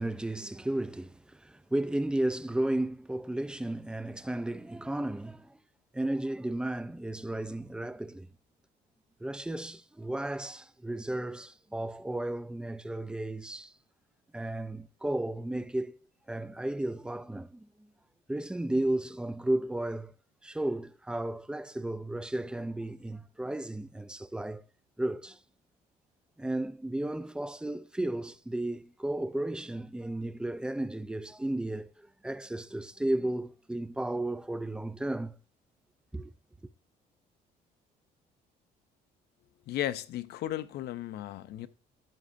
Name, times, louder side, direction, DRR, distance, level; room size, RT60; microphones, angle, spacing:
voice 1, 0.0-5.6 5.9-8.3 9.2-13.7 14.3-16.0 16.3-17.9 18.3-20.1 20.4-24.6 25.0-25.4 26.4-35.4 36.1-36.3, right 1 dB, 5° right, 0.5 m, -34 dB
voice 2, 39.7-41.7, left 13 dB, 75° left, 0.7 m, -35 dB
13.5 x 8.3 x 2.6 m
cardioid pair, 110°, 17 cm